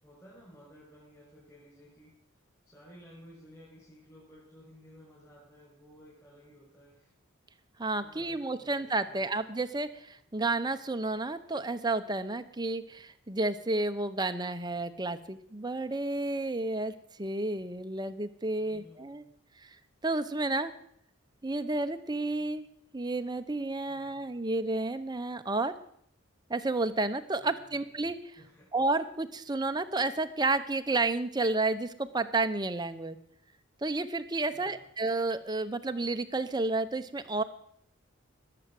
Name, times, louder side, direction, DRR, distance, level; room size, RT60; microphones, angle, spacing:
voice 1, 0.0-2.1 2.6-7.1 8.0-9.2 18.6-19.3 23.9-24.5 27.4-27.9 28.4-28.7 34.5-34.9, equal, 15° left, -7 dB, 6.4 m, -55 dB
voice 2, 7.8-16.9 17.2-19.2 19.6-19.7 20.0-20.7 21.4-22.6 22.9-25.7 26.5-28.2 28.7-33.2 33.8-37.4, right 2 dB, 20° right, 9 dB, 0.8 m, -31 dB
20.0 x 7.8 x 7.7 m, 0.69 s
head